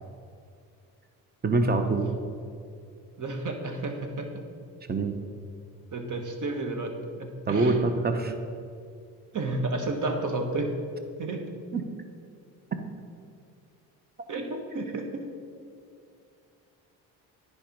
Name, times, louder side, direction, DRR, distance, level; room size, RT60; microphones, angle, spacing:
voice 1, 1.4-2.0 4.9-5.1 7.5-8.3 11.7-11.8, right 3 dB, 25° right, 7 dB, 1.0 m, -24 dB
voice 2, 3.2-4.4 5.9-6.9 7.2-7.8 9.3-10.7 11.2-11.4 14.3-15.3, right 2 dB, 50° right, 4 dB, 1.5 m, -31 dB
10.0 x 5.3 x 5.3 m, 2.4 s
supercardioid pair, 60°, 39 cm